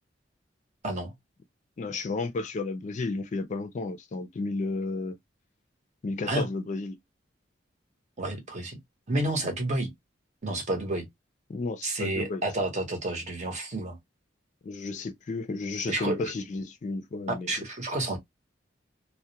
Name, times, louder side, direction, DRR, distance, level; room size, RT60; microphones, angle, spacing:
voice 1, 1.8-5.2 6.0-7.0 11.5-12.4 14.6-17.5, left 3 dB, 40° left, 0.4 m, -32 dB
voice 2, 8.2-8.8 9.1-9.9 10.4-11.1 11.8-14.0 15.9-16.3 17.3-18.2, right 2 dB, 40° right, 0.8 m, -30 dB
2.3 x 2.1 x 2.7 m
head